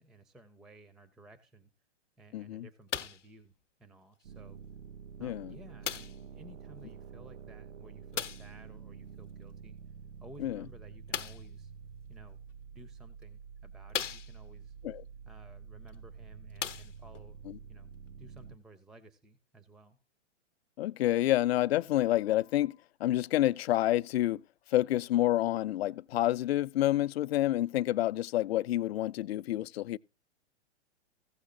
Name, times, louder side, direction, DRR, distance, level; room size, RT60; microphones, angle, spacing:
voice 1, 0.0-1.7 2.2-3.5 3.8-4.6 5.2-9.8 10.2-11.7 12.1-12.4 12.7-14.8 15.3-17.4 17.7-17.9 18.2-20.0, right 1 dB, ahead, 0.4 m, -55 dB
voice 2, 2.3-2.7 5.2-5.5 10.4-10.6 14.8-15.0 17.5-17.6 20.8-24.4 24.7-30.0, left 14 dB, 60° left, 0.5 m, -28 dB
sound 1, 2.9-3.3 4.2-4.3 5.8-6.3 8.1-8.6 11.1-11.5 12.5-12.6 13.2-13.3 13.9-14.6 15.9-16.0 16.5-17.3 18.1-18.2, left 8 dB, 90° left, 0.8 m, -37 dB
sound 2, 4.2-18.6, right 6 dB, 80° right, 0.6 m, -48 dB
15.5 x 6.3 x 3.8 m
hypercardioid pair, 120°, 36 cm